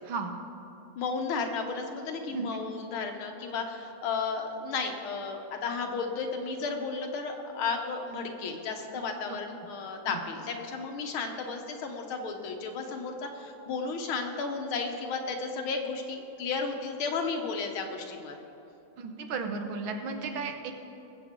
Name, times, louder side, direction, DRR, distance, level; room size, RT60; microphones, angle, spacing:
voice 1, 0.1-0.4 2.3-2.5 8.9-9.0 19.0-20.7, right 4 dB, 80° right, 5 dB, 1.8 m, -34 dB
voice 2, 1.0-18.4, left 4 dB, 90° left, 4 dB, 1.9 m, -33 dB
20.5 x 7.8 x 3.7 m, 3.0 s
omnidirectional pair, 2.2 m